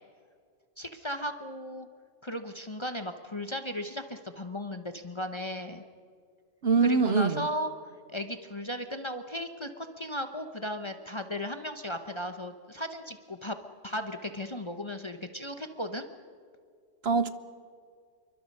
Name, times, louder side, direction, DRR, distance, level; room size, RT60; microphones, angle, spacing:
voice 1, 0.8-1.9 2.2-5.8 6.8-7.7 8.1-13.6 13.8-16.1, equal, 25° left, 7 dB, 0.8 m, -36 dB
voice 2, 6.6-7.4 17.0-17.3, right 4 dB, 55° right, 13 dB, 1.0 m, -23 dB
27.5 x 23.5 x 5.5 m, 2.2 s
omnidirectional pair, 1.4 m